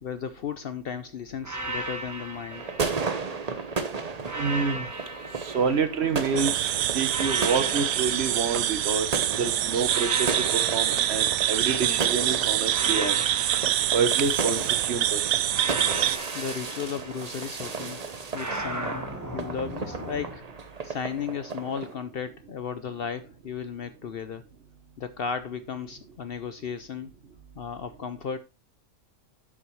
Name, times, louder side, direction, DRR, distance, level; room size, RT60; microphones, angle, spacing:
voice 1, 0.0-2.6 16.3-18.0 18.3-19.0 19.3-20.4 20.8-24.4 25.0-27.1 27.6-28.4, left 7 dB, 60° left, 0.7 m, -34 dB
sound 1, 1.4-3.6 4.2-6.4 7.1-9.2 9.8-12.0 12.7-14.8 15.5-17.7 18.3-20.4, right 1 dB, 15° right, 1.0 m, -37 dB
sound 2, 2.5-21.9, right 4 dB, 35° right, 0.8 m, -35 dB
voice 2, 4.4-4.9 5.4-6.7 6.9-9.1 9.4-13.2 13.9-15.2, right 5 dB, 55° right, 1.1 m, -28 dB
sound 3, 6.4-16.2, right 13 dB, 85° right, 1.0 m, -26 dB
11.0 x 6.1 x 3.1 m
omnidirectional pair, 1.4 m